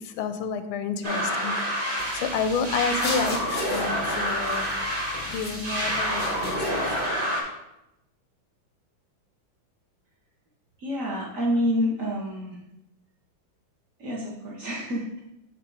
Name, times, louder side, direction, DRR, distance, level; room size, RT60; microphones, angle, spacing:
voice 1, 0.0-6.8, left 5 dB, 90° left, 9 dB, 1.5 m, -30 dB
sound 1, 1.0-7.4, equal, 30° right, 1.3 m, -28 dB
sound 2, 2.0-7.0, left 3 dB, 50° left, 0.5 m, -39 dB
voice 2, 10.8-12.6 14.0-15.2, equal, 50° right, -3 dB, 1.0 m, -28 dB
6.1 x 3.7 x 4.5 m, 0.87 s
omnidirectional pair, 2.2 m